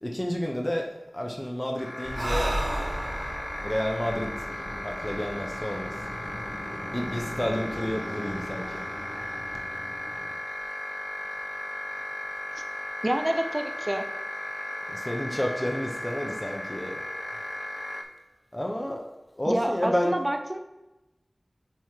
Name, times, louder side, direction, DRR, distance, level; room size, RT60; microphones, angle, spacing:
voice 1, 0.0-2.6 3.6-4.4 4.8-6.0 6.9-8.8 14.9-17.0 18.5-19.1 19.4-20.2, equal, 20° left, 0 dB, 0.7 m, -30 dB
sound 1, 1.8-18.0, left 1 dB, 55° left, 0.6 m, -36 dB
Breathing, 2.0-5.6, right 1 dB, 55° right, 0.8 m, -33 dB
sound 2, 4.0-10.3, equal, 5° right, 1.4 m, -41 dB
voice 2, 13.0-14.1 19.5-20.6, right 1 dB, 30° right, 5 dB, 0.5 m, -28 dB
8.7 x 3.6 x 3.1 m, 1.0 s
wide cardioid pair, 45°, 0 cm